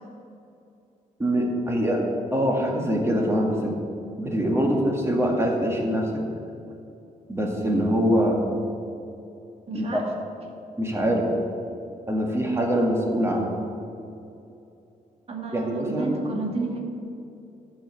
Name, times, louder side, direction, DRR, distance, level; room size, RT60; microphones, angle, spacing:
voice 1, 1.2-2.0 2.3-3.7 4.2-6.1 7.3-8.4 9.7-10.0 10.8-11.3 12.1-13.5 15.5-16.2, equal, 20° right, 0 dB, 2.0 m, -23 dB
voice 2, 9.7-10.1 15.3-16.8, right 3 dB, 45° right, 0 dB, 1.9 m, -31 dB
12.0 x 5.6 x 8.1 m, 2.7 s
cardioid pair, 120°, 14 cm